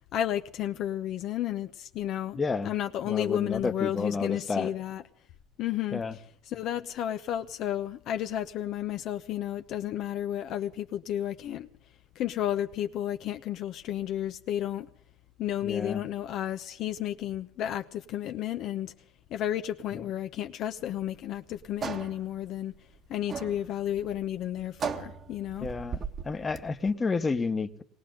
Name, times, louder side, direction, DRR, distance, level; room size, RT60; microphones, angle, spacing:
voice 1, 0.1-2.4 2.6-5.0 5.6-6.2 6.5-11.7 12.1-14.9 15.4-18.9 19.3-22.7 23.1-25.7, left 11 dB, 60° left, 0.9 m, -32 dB
voice 2, 2.3-2.7 3.1-4.7 5.9-6.2 15.6-16.0 19.9-20.0 25.6-26.0 26.2-27.8, left 4 dB, 25° left, 1.2 m, -30 dB
sound 1, 20.8-26.9, right 6 dB, 40° right, 1.4 m, -38 dB
20.5 x 18.0 x 3.8 m
supercardioid pair, 100°, 0 cm